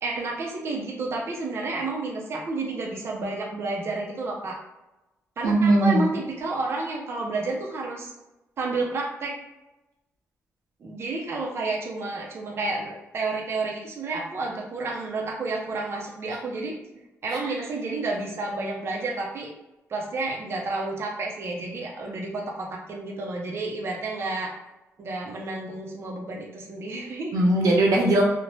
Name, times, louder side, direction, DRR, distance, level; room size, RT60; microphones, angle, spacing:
voice 1, 0.0-4.6 5.4-8.1 8.6-9.4 10.8-16.7 17.2-19.5 19.9-24.5 25.0-27.4, right 3 dB, 45° right, -2 dB, 0.5 m, -30 dB
voice 2, 5.4-6.1 17.3-17.5 27.3-28.2, right 2 dB, 90° right, -2 dB, 0.7 m, -20 dB
2.6 x 2.1 x 3.0 m, 0.99 s
cardioid pair, 115°, 6 cm